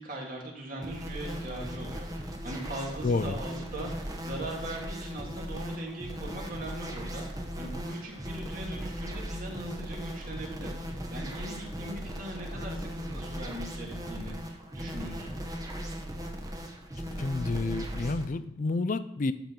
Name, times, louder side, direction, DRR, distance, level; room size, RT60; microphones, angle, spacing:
voice 1, 0.0-14.3 14.7-15.4, right 1 dB, 50° right, -1 dB, 2.2 m, -40 dB
sound 1, 0.8-18.3, equal, 20° right, 1.0 m, -38 dB
voice 2, 3.0-3.3 17.2-19.3, left 3 dB, 45° left, 13 dB, 0.4 m, -29 dB
12.5 x 4.5 x 3.8 m, 0.81 s
head